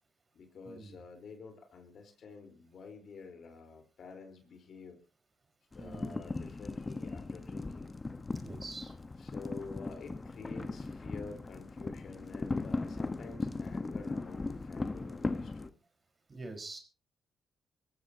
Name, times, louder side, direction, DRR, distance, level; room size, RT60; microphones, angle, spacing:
voice 1, 0.3-5.0 5.7-7.9 9.2-15.8, left 4 dB, 60° left, 6 dB, 4.2 m, -49 dB
sound 1, 5.7-15.7, left 3 dB, 30° left, 1.2 m, -38 dB
voice 2, 5.8-6.2 8.3-8.9 16.3-16.8, right 3 dB, 35° right, 5 dB, 4.9 m, -45 dB
23.5 x 14.5 x 2.9 m, 0.34 s
supercardioid pair, 55°, 0 cm